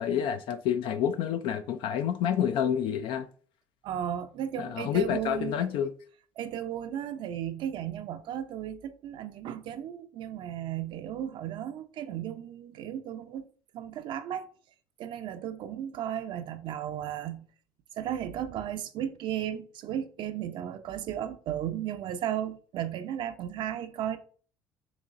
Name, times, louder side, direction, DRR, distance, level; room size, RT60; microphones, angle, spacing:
voice 1, 0.0-3.3 4.6-5.9, left 9 dB, 60° left, 0.4 m, -28 dB
voice 2, 3.8-5.6 6.4-13.4 13.7-14.5 15.0-17.4 17.9-24.2, right 10 dB, 55° right, 0.5 m, -35 dB
6.1 x 3.1 x 2.5 m
hypercardioid pair, 60°, 10 cm